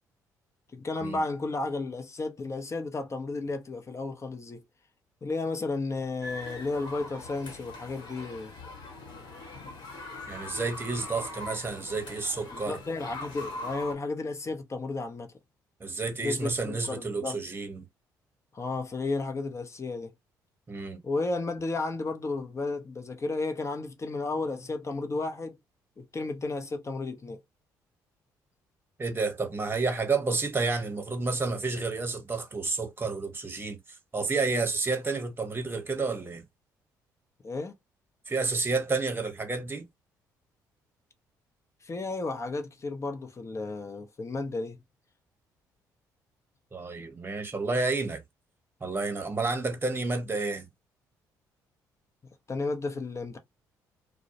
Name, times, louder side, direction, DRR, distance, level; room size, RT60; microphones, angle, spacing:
voice 1, 0.7-4.6 5.2-8.5 12.5-15.3 16.2-17.4 18.5-20.1 21.0-25.6 26.0-27.4 37.4-37.7 41.8-44.8 52.5-53.4, left 3 dB, 30° left, 0.7 m, -33 dB
sound 1, 6.2-13.9, left 2 dB, 60° left, 1.1 m, -42 dB
voice 2, 10.3-12.8 15.8-17.8 20.7-21.0 29.0-33.8 34.1-36.4 38.3-39.9 46.7-48.2 48.8-50.7, right 3 dB, 25° right, 0.8 m, -30 dB
2.2 x 2.0 x 2.7 m
hypercardioid pair, 50°, 9 cm